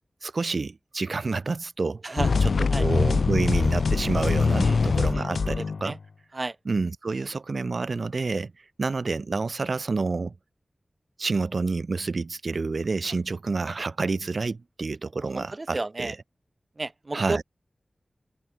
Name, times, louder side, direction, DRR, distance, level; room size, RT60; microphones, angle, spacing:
voice 1, 0.2-6.0 6.6-8.5 8.8-10.3 11.2-16.2 17.1-17.4, right 3 dB, 65° right, 4.8 m, -29 dB
voice 2, 2.0-2.4 2.7-2.8 4.6-4.8 5.1-6.0 6.3-6.6 15.3-16.1 16.8-17.4, right 2 dB, 40° right, 2.6 m, -33 dB
sound 1, 2.2-5.9, left 4 dB, 85° left, 0.9 m, -23 dB
wide cardioid pair, 75°, 0 cm